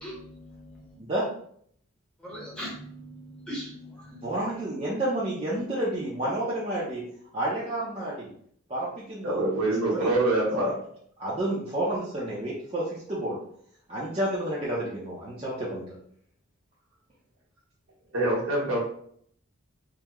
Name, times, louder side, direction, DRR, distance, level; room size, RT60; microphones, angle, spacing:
voice 1, 0.0-1.0 2.2-4.3, equal, 5° left, -6 dB, 0.8 m, -40 dB
voice 2, 4.2-7.0 7.3-8.3 8.7-9.5 9.9-10.1 10.5-10.7 11.2-13.4 13.9-16.0, right 1 dB, 25° right, -8 dB, 0.6 m, -30 dB
voice 3, 9.2-10.8 18.1-18.8, right 2 dB, 70° right, -4 dB, 1.1 m, -25 dB
3.5 x 2.1 x 2.9 m, 0.64 s
head